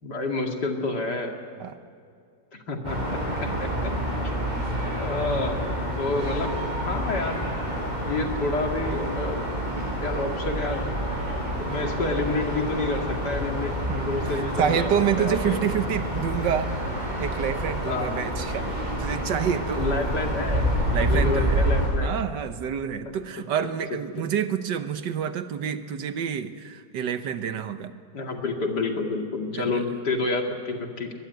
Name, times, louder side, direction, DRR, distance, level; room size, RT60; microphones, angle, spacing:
voice 1, 0.0-1.4 2.5-3.9 4.2-4.3 5.0-5.6 6.0-9.4 10.0-10.9 11.6-15.6 17.8-18.2 19.8-20.7 21.0-22.1 23.6-23.7 24.2-24.3 28.1-31.1, left 3 dB, 65° left, 3 dB, 2.9 m, -29 dB
sound 1, 2.8-21.9, equal, 25° right, 7.4 m, -28 dB
voice 2, 13.9-16.7 17.0-18.7 19.0-19.9 20.9-21.6 22.0-27.9 29.5-29.8, right 8 dB, 75° right, 10 dB, 1.7 m, -28 dB
22.0 x 21.0 x 9.4 m, 2.3 s
omnidirectional pair, 1.9 m